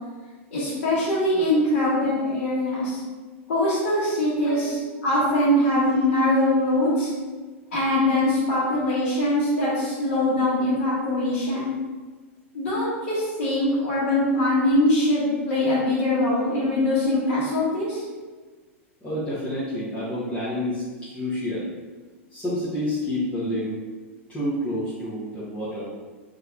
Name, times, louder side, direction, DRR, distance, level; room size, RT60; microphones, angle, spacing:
voice 1, 0.5-3.0 3.5-7.1 7.7-11.7 12.5-18.0, left 1 dB, 80° left, -11 dB, 1.3 m, -22 dB
voice 2, 4.4-5.1 19.0-21.7 22.3-23.8 24.3-25.8, left 1 dB, 15° left, -12 dB, 1.0 m, -29 dB
3.2 x 2.8 x 2.5 m, 1.4 s
hypercardioid pair, 110°, 7 cm